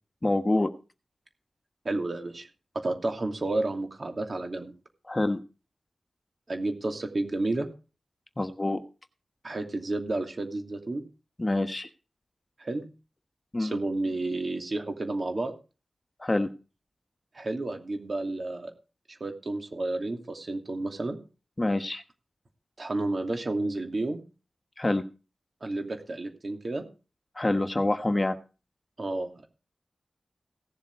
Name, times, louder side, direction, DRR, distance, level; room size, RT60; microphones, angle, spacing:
voice 1, 0.2-0.7 5.1-5.4 8.4-8.8 11.4-11.9 13.5-13.8 16.2-16.5 21.6-22.0 24.8-25.0 27.4-28.4, left 2 dB, 30° left, 8 dB, 1.3 m, -26 dB
voice 2, 1.8-2.5 2.7-4.7 6.5-7.7 9.4-11.0 12.6-12.9 13.6-15.5 17.3-18.7 19.1-21.2 22.8-24.2 25.6-26.8 29.0-29.5, right 2 dB, 55° right, 4 dB, 2.7 m, -31 dB
17.0 x 7.4 x 4.7 m, 0.33 s
cardioid pair, 55°, 0 cm